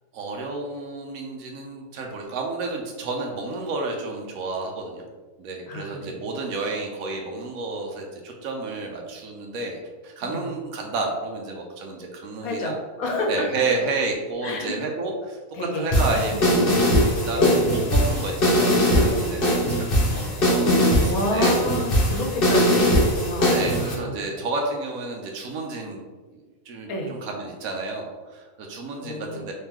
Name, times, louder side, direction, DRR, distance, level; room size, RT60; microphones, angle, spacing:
voice 1, 0.1-5.0 5.4-9.8 10.0-12.8 13.3-15.4 15.7-16.6 17.3-21.5 23.5-26.1 26.3-29.5, right 3 dB, 85° right, 1 dB, 1.1 m, -31 dB
voice 2, 5.7-6.2 10.2-10.5 12.4-13.5 14.4-14.8 15.5-15.9 16.1-16.4 16.7-17.6 21.0-24.2 26.9-27.2 29.0-29.5, left 1 dB, 85° left, 1 dB, 1.2 m, -30 dB
sound 1, 15.9-23.9, equal, 45° left, 1.1 m, -20 dB
3.7 x 3.2 x 2.9 m, 1.3 s
omnidirectional pair, 1.5 m